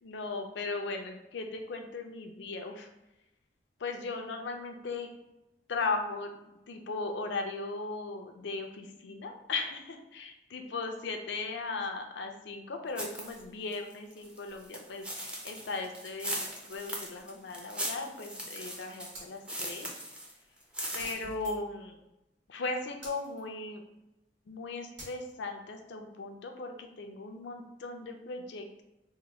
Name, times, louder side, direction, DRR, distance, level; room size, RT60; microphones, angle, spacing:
voice 1, 0.0-2.9 3.8-5.1 5.7-19.9 20.9-22.0 22.5-23.8 24.5-28.8, left 3 dB, 70° left, 4 dB, 0.4 m, -37 dB
sound 1, 13.0-13.4 13.7-20.3 20.6-21.1, right 1 dB, 5° right, 0.4 m, -39 dB
sound 2, 19.1-19.3 21.0-21.9 23.0-23.4 25.0-25.3, right 1 dB, 80° right, 1.3 m, -47 dB
2.9 x 2.2 x 4.1 m, 0.93 s
head